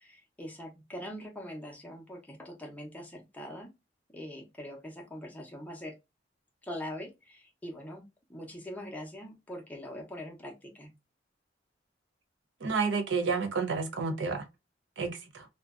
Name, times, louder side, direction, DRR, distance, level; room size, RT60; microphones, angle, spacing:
voice 1, 0.0-3.7 4.1-5.9 6.6-8.0 8.3-10.9, equal, 10° left, 0.6 m, -42 dB
voice 2, 12.6-14.4 15.0-15.5, right 4 dB, 70° right, 0.5 m, -30 dB
2.4 x 2.2 x 2.3 m
head